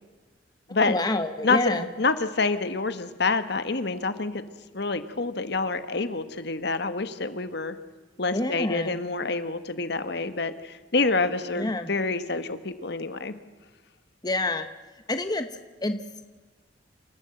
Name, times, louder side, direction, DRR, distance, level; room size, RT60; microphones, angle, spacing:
voice 1, 0.8-1.9 8.3-9.0 11.6-11.9 14.2-14.7 15.1-15.5 15.8-16.0, left 2 dB, 20° left, 8 dB, 1.0 m, -27 dB
voice 2, 1.4-4.4 4.7-7.8 8.2-13.3, left 3 dB, 60° left, 11 dB, 1.4 m, -27 dB
28.5 x 14.0 x 7.8 m, 1.3 s
head